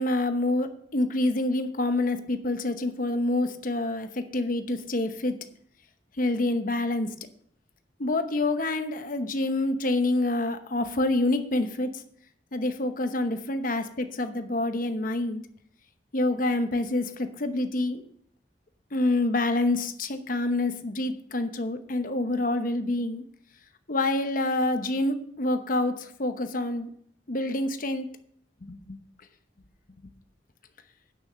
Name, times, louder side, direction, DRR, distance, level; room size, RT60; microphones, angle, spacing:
voice 1, 0.0-5.3 6.2-7.1 8.0-11.9 12.5-15.4 16.1-18.0 18.9-23.2 23.9-25.9 26.2-26.9 27.3-28.1 28.7-28.8, left 2 dB, 50° left, 8 dB, 0.9 m, -27 dB
9.4 x 6.3 x 6.4 m, 0.64 s
head